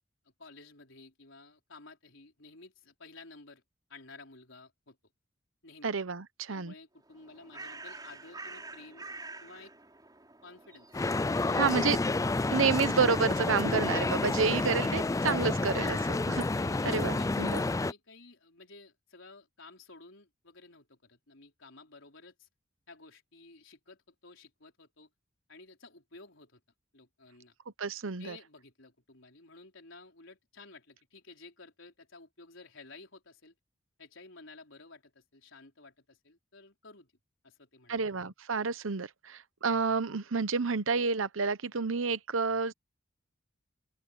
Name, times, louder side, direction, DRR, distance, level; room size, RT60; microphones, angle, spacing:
voice 1, 0.4-3.6 3.9-5.0 5.6-5.9 6.5-9.1 9.4-9.7 10.4-11.0 11.3-11.6 15.7-15.9 16.5-22.5 22.9-25.1 25.5-26.6 26.9-27.5 28.2-33.5 34.0-37.1 37.4-38.0, left 3 dB, 70° left, 4.8 m, -53 dB
voice 2, 5.8-6.7 11.6-12.0 12.5-16.0 16.8-17.6 27.8-28.4 37.9-42.7, right 5 dB, 85° right, 0.9 m, -29 dB
Bird, 7.0-13.1, right 3 dB, 20° right, 4.1 m, -48 dB
sound 1, 10.9-17.9, left 2 dB, 15° left, 0.4 m, -29 dB
open air
head